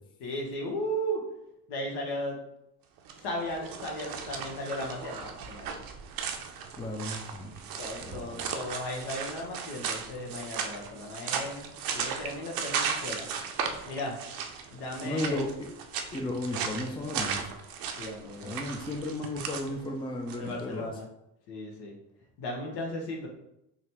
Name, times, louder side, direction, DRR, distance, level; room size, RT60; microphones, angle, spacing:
voice 1, 0.2-1.2 1.7-2.4 3.2-5.8 7.8-13.3 13.8-14.2 14.7-15.4 18.0-18.7 20.0-21.1 21.5-21.9 22.4-23.3, equal, 65° left, 0 dB, 1.1 m, -36 dB
sound 1, 3.0-20.6, right 6 dB, 55° right, 0.6 m, -36 dB
voice 2, 6.8-7.5 8.0-8.5 15.0-15.7 16.1-17.5 18.4-20.9, left 1 dB, 10° left, 2 dB, 0.5 m, -34 dB
3.9 x 2.2 x 2.9 m, 0.81 s
hypercardioid pair, 60°, 42 cm